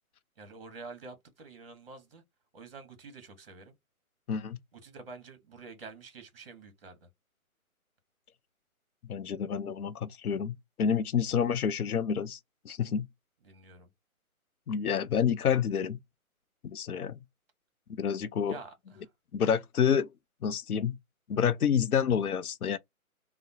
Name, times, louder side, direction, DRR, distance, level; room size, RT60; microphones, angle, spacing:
voice 1, 0.4-2.2 2.5-3.8 4.7-7.1 13.4-13.9 18.5-19.1, right 4 dB, 40° right, 1.0 m, -48 dB
voice 2, 9.1-12.4 12.6-13.1 14.7-16.0 16.6-17.2 17.9-18.6 19.3-20.1 20.4-21.0 21.3-22.8, left 7 dB, 90° left, 0.6 m, -28 dB
2.8 x 2.0 x 2.6 m
hypercardioid pair, 160°, 43 cm